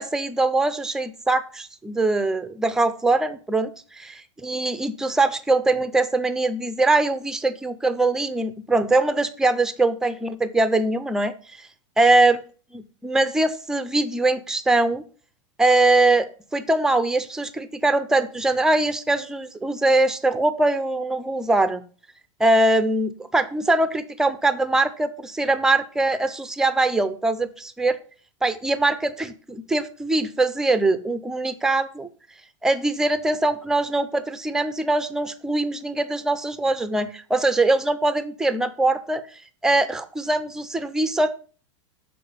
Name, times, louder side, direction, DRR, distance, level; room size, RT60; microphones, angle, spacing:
voice 1, 0.0-11.7 12.0-12.4 12.7-15.0 15.6-21.8 22.4-28.0 28.4-32.1 32.6-41.3, right 2 dB, 5° right, 11 dB, 0.4 m, -22 dB
6.8 x 4.1 x 5.2 m, 0.40 s
supercardioid pair, 150°, 16 cm